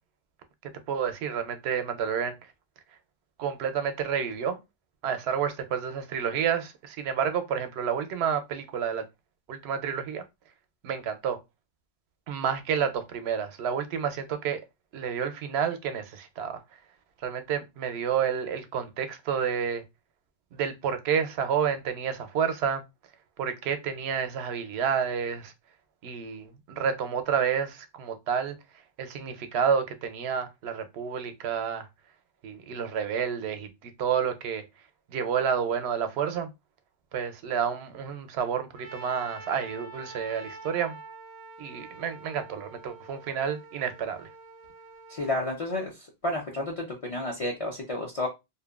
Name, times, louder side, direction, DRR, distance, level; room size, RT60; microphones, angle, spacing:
voice 1, 0.9-2.5 3.4-4.6 5.0-9.0 9.5-10.2 10.8-11.4 12.3-14.6 14.9-16.6 17.2-19.8 20.5-22.8 23.4-25.5 26.0-31.9 32.4-34.6 35.1-36.5 37.1-41.0 41.6-44.3, right 7 dB, 85° right, 0.8 m, -30 dB
Trumpet, 38.7-45.3, right 3 dB, 50° right, 0.4 m, -46 dB
voice 2, 45.1-45.9 46.2-48.3, left 1 dB, 45° left, 0.5 m, -31 dB
2.7 x 2.2 x 2.3 m
omnidirectional pair, 1.1 m